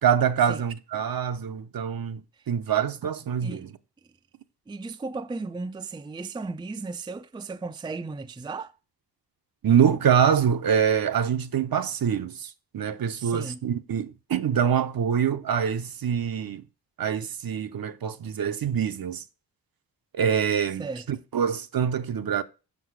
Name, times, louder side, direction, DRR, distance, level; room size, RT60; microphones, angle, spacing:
voice 1, 0.0-2.2 2.5-3.7 9.6-16.6 17.0-19.2 20.1-22.4, right 8 dB, 55° right, 0.8 m, -25 dB
voice 2, 4.7-8.7 13.2-13.6 20.8-21.0, right 3 dB, 10° right, 0.5 m, -35 dB
6.2 x 6.0 x 4.8 m
cardioid pair, 55°, 41 cm